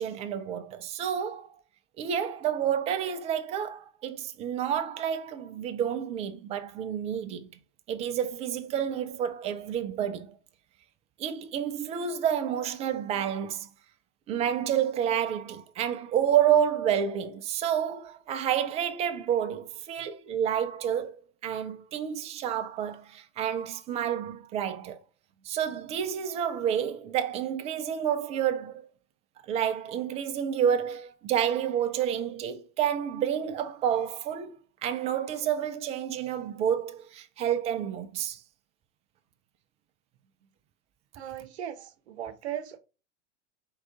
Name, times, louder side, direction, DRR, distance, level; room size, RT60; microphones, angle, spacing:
voice 1, 0.0-1.5 2.0-7.5 7.9-10.4 11.2-13.7 14.3-21.2 21.4-25.0 25.5-28.9 29.5-34.5 34.8-38.4, right 9 dB, 20° right, 0.3 m, -29 dB
voice 2, 41.1-42.8, right 10 dB, 65° right, 0.7 m, -38 dB
4.7 x 2.4 x 3.5 m
figure-of-eight pair, 90°, 35 cm